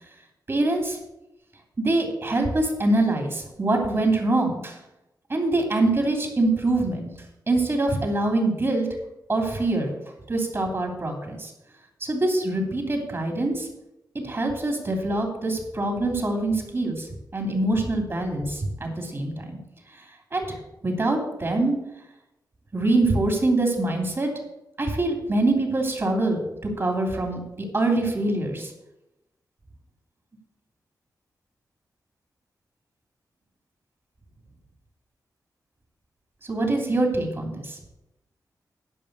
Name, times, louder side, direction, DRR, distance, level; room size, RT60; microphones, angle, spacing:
voice 1, 0.5-1.0 1.8-4.8 5.3-7.1 7.5-8.9 9.3-10.0 10.3-11.5 12.0-13.7 14.1-19.6 19.9-20.0 20.3-20.6 20.8-21.8 22.7-24.3 24.8-26.4 26.8-28.7 36.4-37.8, right 2 dB, 35° right, 2 dB, 3.1 m, -24 dB
11.0 x 5.3 x 8.2 m, 0.91 s
wide cardioid pair, 90°, 7 cm